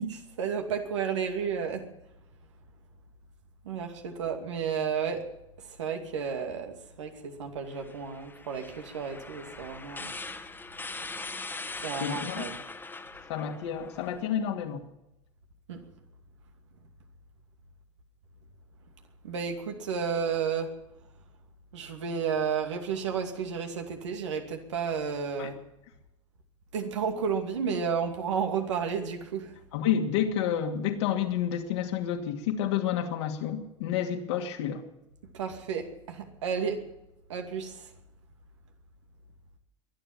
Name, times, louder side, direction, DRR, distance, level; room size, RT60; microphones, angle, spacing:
voice 1, 0.1-1.9 3.6-5.3 5.6-10.1 11.8-12.6 15.7-15.8 19.2-20.8 21.7-25.6 26.7-29.5 35.3-36.9 37.3-37.9, right 6 dB, 75° right, 4 dB, 2.5 m, -32 dB
sound 1, 7.7-14.2, left 3 dB, 15° left, 1.7 m, -41 dB
voice 2, 12.0-12.4 13.3-14.8 25.4-25.5 29.7-34.8, left 9 dB, 65° left, 3 dB, 2.5 m, -29 dB
23.0 x 10.0 x 5.9 m, 0.88 s
figure-of-eight pair, 80°, 15 cm